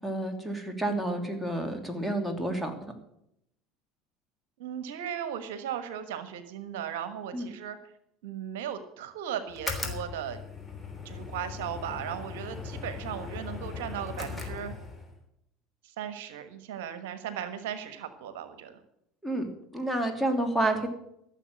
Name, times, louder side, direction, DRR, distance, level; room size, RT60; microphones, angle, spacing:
voice 1, 0.0-2.9 7.3-7.5 19.2-20.9, right 1 dB, ahead, 4 dB, 3.0 m, -30 dB
voice 2, 4.6-7.8 8.2-10.4 11.0-14.8 15.8-18.8, right 9 dB, 70° right, 11 dB, 1.2 m, -37 dB
sound 1, 9.5-15.2, left 4 dB, 15° left, 3.3 m, -38 dB
14.5 x 7.3 x 7.9 m, 0.78 s
hypercardioid pair, 70°, 0 cm